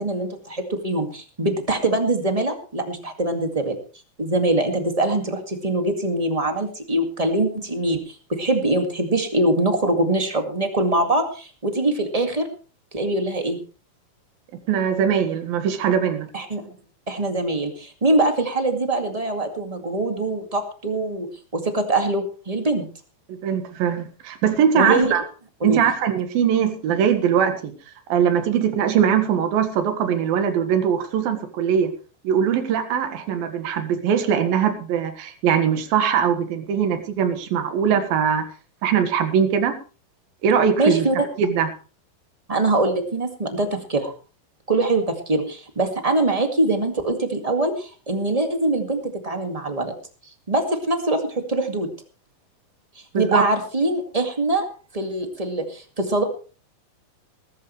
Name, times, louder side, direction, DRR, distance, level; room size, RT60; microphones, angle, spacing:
voice 1, 0.0-3.8 4.2-12.5 12.9-13.6 16.3-16.7 17.1-21.3 21.5-22.9 24.7-25.1 25.6-25.8 40.8-41.3 42.5-44.1 44.7-49.9 50.5-51.9 53.1-54.7 54.9-56.2, right 2 dB, 20° right, 5 dB, 0.9 m, -23 dB
voice 2, 14.7-16.3 23.3-25.2 25.6-27.8 28.1-31.9 32.2-38.4 38.8-39.7 40.4-41.1 41.4-41.7 53.2-53.4, right 8 dB, 75° right, 7 dB, 3.4 m, -21 dB
20.0 x 13.0 x 3.2 m, 0.37 s
omnidirectional pair, 4.3 m